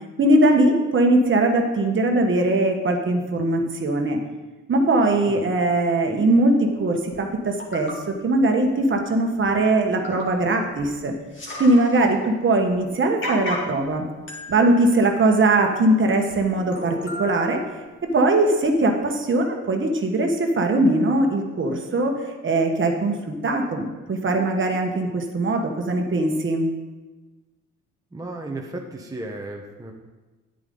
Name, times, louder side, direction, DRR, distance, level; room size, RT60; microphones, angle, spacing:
voice 1, 0.2-4.2 4.7-11.1 11.6-14.0 14.5-17.6 18.1-26.7, right 2 dB, 40° right, 3 dB, 1.4 m, -20 dB
sound 1, 7.1-7.2 7.6-8.0 9.0-9.1 9.4-9.5 9.9-10.4 10.8-10.9 11.2-12.2 12.7-12.8 13.2-13.9 14.3-15.8 16.3-16.4 16.7-18.1 18.7-18.8, left 1 dB, 40° left, 2.5 m, -35 dB
voice 2, 28.1-29.9, right 2 dB, 10° right, 1 dB, 1.1 m, -34 dB
10.0 x 9.0 x 3.9 m, 1.2 s
cardioid pair, 90°, 30 cm